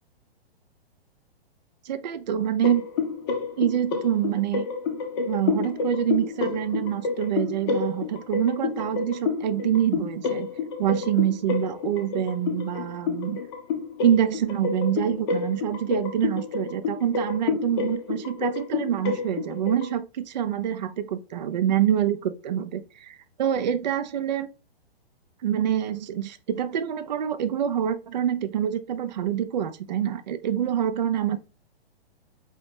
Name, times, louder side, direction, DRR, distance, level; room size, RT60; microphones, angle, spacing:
voice 1, 1.8-2.9 3.6-4.7 5.2-10.5 10.8-13.4 14.0-24.5 25.4-31.4, right 10 dB, 45° right, 0.4 m, -26 dB
sound 1, 2.6-19.9, left 5 dB, 25° left, 0.6 m, -29 dB
4.6 x 2.8 x 3.3 m
figure-of-eight pair, 115°, 31 cm